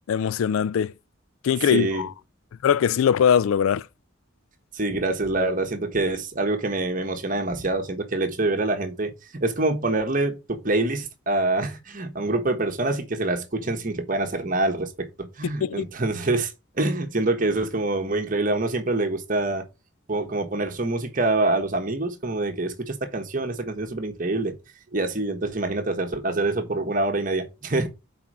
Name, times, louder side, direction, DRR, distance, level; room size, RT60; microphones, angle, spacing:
voice 1, 0.1-0.9 1.4-2.1 2.6-3.9 15.6-15.8, left 8 dB, 80° left, 0.3 m, -21 dB
voice 2, 1.6-2.1 4.7-16.5 16.8-19.6 20.1-24.6 24.9-27.9, right 2 dB, 40° right, 1.2 m, -25 dB
5.8 x 4.4 x 6.2 m
head